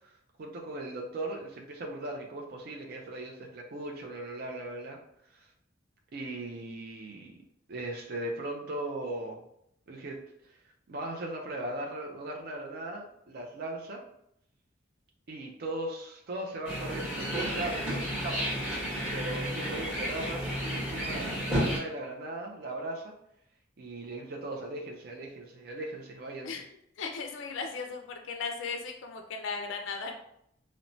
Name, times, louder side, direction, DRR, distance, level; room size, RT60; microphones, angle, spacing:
voice 1, 0.0-5.0 5.3-5.5 6.1-7.4 7.7-9.4 9.9-10.2 10.4-10.6 10.9-14.0 15.3-18.5 19.1-23.1 23.8-26.5, right 1 dB, 50° right, 1 dB, 0.4 m, -38 dB
sound 1, 16.6-21.8, equal, 10° right, 1.2 m, -32 dB
voice 2, 27.0-30.2, left 5 dB, 75° left, 4 dB, 0.3 m, -36 dB
3.0 x 2.1 x 2.6 m, 0.75 s
head